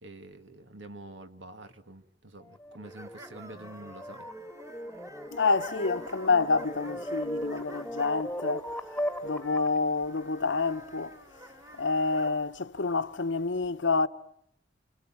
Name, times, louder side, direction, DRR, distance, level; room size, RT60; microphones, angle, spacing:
voice 1, 0.0-4.3, right 2 dB, 80° right, 2.1 m, -47 dB
sound 1, 2.5-9.8, equal, 5° left, 1.5 m, -38 dB
sound 2, 2.8-12.4, equal, 15° right, 1.8 m, -49 dB
voice 2, 5.3-8.7 9.2-11.1 11.7-14.1, left 4 dB, 85° left, 1.0 m, -28 dB
29.0 x 26.0 x 7.5 m
head